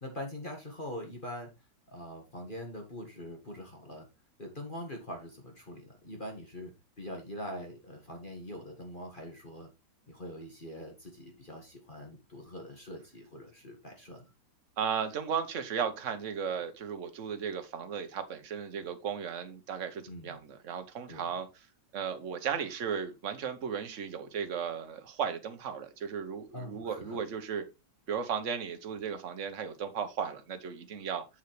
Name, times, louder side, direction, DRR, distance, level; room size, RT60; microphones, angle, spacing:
voice 1, 0.0-1.5 1.9-4.1 4.4-6.7 7.0-9.7 10.1-14.3 20.1-20.3 21.1-21.2 26.5-27.2, left 1 dB, 25° left, 1.9 m, -43 dB
voice 2, 14.8-21.5 21.9-27.7 28.1-31.3, right 7 dB, 45° right, 1.3 m, -35 dB
7.3 x 7.3 x 3.3 m
omnidirectional pair, 2.1 m